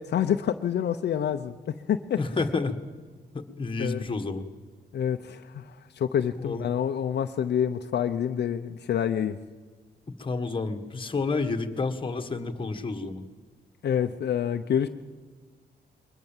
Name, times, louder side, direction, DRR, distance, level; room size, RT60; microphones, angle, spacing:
voice 1, 0.0-2.2 3.8-4.0 4.9-9.4 13.8-14.9, left 9 dB, 70° left, 7 dB, 0.8 m, -27 dB
voice 2, 2.2-2.8 3.3-4.4 6.4-6.7 10.2-13.2, left 3 dB, 30° left, 6 dB, 1.7 m, -30 dB
22.5 x 20.0 x 7.4 m, 1.4 s
cardioid pair, 120°, 18 cm